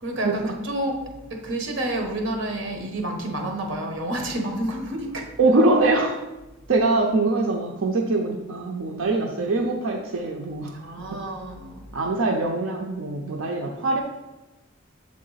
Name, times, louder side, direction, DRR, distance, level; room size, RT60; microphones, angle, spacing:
voice 1, 0.0-1.0 1.3-5.3 10.8-11.8, right 1 dB, 60° right, 3 dB, 1.1 m, -29 dB
voice 2, 5.4-6.2 6.7-10.7 11.1-11.2 11.9-14.0, right 2 dB, 80° right, 0 dB, 0.6 m, -23 dB
7.2 x 3.7 x 3.9 m, 1.0 s
head